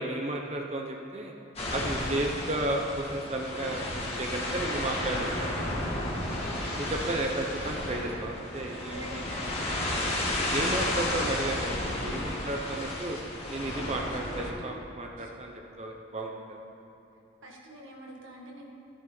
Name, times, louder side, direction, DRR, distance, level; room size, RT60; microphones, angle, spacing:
voice 1, 0.0-1.3 1.7-5.5 6.8-9.2 10.0-10.2 10.4-13.2 13.5-16.6, right 1 dB, 30° right, 1 dB, 0.7 m, -33 dB
sound 1, 1.6-14.5, left 1 dB, 30° left, 2.1 m, -32 dB
voice 2, 8.8-9.8 13.9-15.3 16.2-16.7 17.4-18.7, right 1 dB, 90° right, -1 dB, 1.9 m, -47 dB
14.0 x 11.0 x 3.9 m, 2.8 s
head